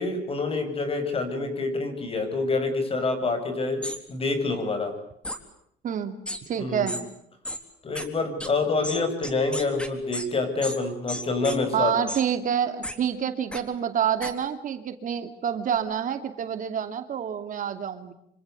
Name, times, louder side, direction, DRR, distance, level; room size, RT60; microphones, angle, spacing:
voice 1, 0.0-4.9 6.6-7.0 7.8-12.0, left 3 dB, 35° left, 8 dB, 7.5 m, -27 dB
sound 1, 3.8-4.0 5.2-5.4 6.3-6.4 6.9-7.0 7.4-7.6 8.0-8.1 8.4-8.5 8.8-10.3 10.6-10.8 11.1-11.6 12.1-12.2 12.8-13.0 13.5-13.6 14.2-14.3, equal, 5° left, 3.8 m, -33 dB
voice 2, 5.8-6.2 6.5-7.0 11.7-18.1, right 8 dB, 50° right, 8 dB, 2.7 m, -27 dB
27.0 x 25.5 x 8.3 m, 0.71 s
cardioid pair, 110°, 17 cm